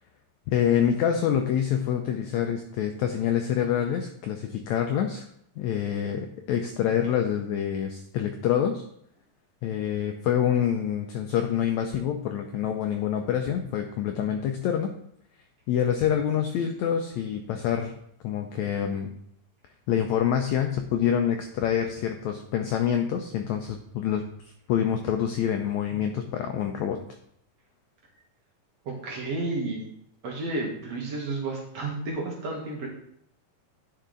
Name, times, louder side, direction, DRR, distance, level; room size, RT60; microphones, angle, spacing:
voice 1, 0.5-5.2 5.6-8.8 9.6-14.9 15.7-17.9 18.2-19.1 19.9-27.0, left 9 dB, 80° left, 5 dB, 1.6 m, -26 dB
voice 2, 28.9-29.9 30.2-32.9, right 2 dB, 55° right, -1 dB, 2.4 m, -31 dB
10.0 x 5.0 x 3.8 m, 0.69 s
omnidirectional pair, 3.9 m